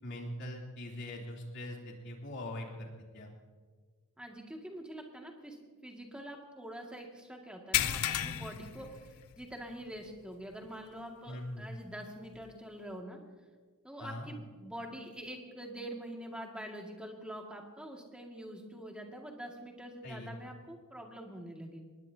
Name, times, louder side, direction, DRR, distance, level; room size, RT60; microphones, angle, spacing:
voice 1, 0.0-2.9 3.1-3.3 11.3-11.7 14.0-14.3 20.0-20.3, left 1 dB, 55° left, -1 dB, 3.2 m, -42 dB
voice 2, 4.2-13.2 13.8-21.8, right 1 dB, 5° right, 1 dB, 2.1 m, -45 dB
sound 1, 7.7-9.6 10.0-10.2 10.6-10.7 12.4-12.5, left 11 dB, 90° left, 0.6 m, -33 dB
22.5 x 19.5 x 2.8 m, 1.5 s
head